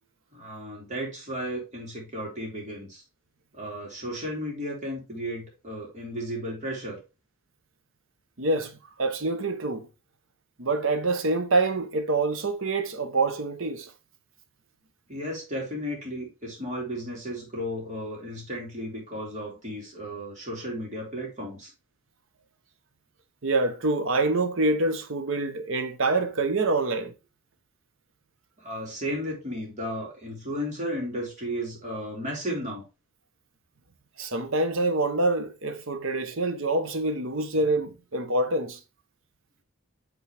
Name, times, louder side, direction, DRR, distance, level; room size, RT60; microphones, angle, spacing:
voice 1, 0.3-3.0 3.5-7.0 15.1-21.7 28.6-32.8, equal, 35° right, 2.7 m, -34 dB
voice 2, 8.4-9.9 10.6-13.9 23.4-27.1 34.2-38.8, right 2 dB, 60° right, 0.9 m, -26 dB
8.4 x 3.9 x 3.3 m
head